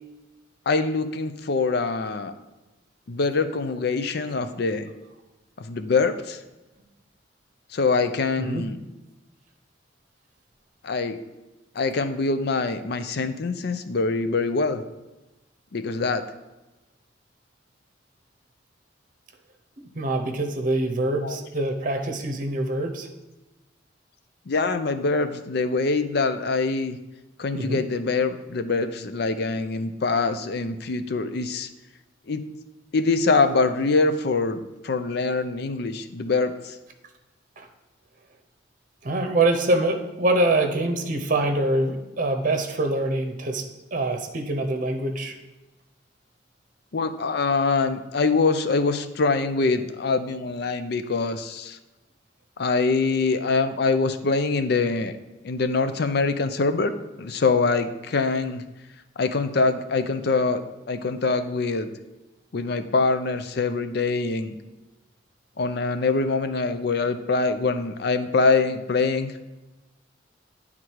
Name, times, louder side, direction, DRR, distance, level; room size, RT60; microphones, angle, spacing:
voice 1, 0.7-2.3 3.1-4.9 5.6-6.4 7.7-8.8 10.8-11.2 11.8-14.8 15.7-16.2 21.2-21.4 24.5-27.0 27.4-31.7 32.3-32.5 32.9-36.8 46.9-51.8 52.6-55.2 55.4-56.9 57.2-58.6 59.2-61.9 62.5-64.6 65.6-69.3, left 4 dB, 60° left, 10 dB, 0.5 m, -24 dB
voice 2, 19.8-23.1 27.5-27.8 37.6-37.7 39.0-43.6 43.9-45.3, right 2 dB, 45° right, 4 dB, 0.8 m, -24 dB
9.4 x 3.7 x 4.6 m, 1.1 s
head